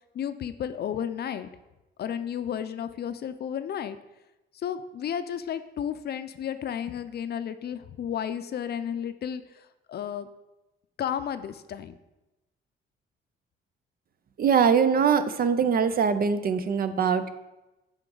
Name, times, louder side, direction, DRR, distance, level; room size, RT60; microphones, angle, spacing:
voice 1, 0.1-1.5 2.0-4.0 4.5-10.3 11.0-12.0, left 9 dB, 55° left, 11 dB, 0.5 m, -33 dB
voice 2, 14.4-17.3, right 6 dB, 50° right, 11 dB, 0.5 m, -22 dB
9.7 x 3.7 x 3.9 m, 1.0 s
cardioid pair, 90°, 20 cm